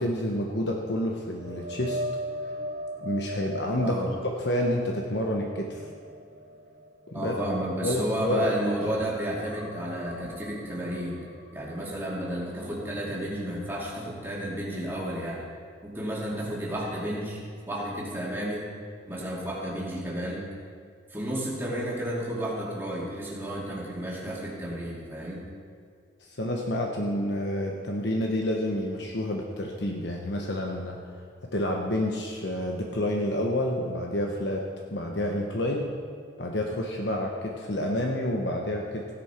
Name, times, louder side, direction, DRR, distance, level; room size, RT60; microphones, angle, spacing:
voice 1, 0.0-2.0 3.0-5.8 7.1-7.4 7.8-8.5 8.8-8.9 26.3-31.0 31.5-34.6 34.9-35.8 36.4-39.1, left 1 dB, 70° left, 0 dB, 1.1 m, -29 dB
sound 1, 1.4-8.8 9.1-13.0 13.4-13.6 16.9-17.0, equal, 65° right, 3.3 m, -40 dB
voice 2, 3.8-4.1 7.1-11.2 11.5-15.4 15.8-17.4 17.7-18.7 19.1-20.5 21.1-25.4, right 1 dB, 10° right, -5 dB, 2.5 m, -32 dB
16.0 x 10.5 x 4.5 m, 2.2 s
head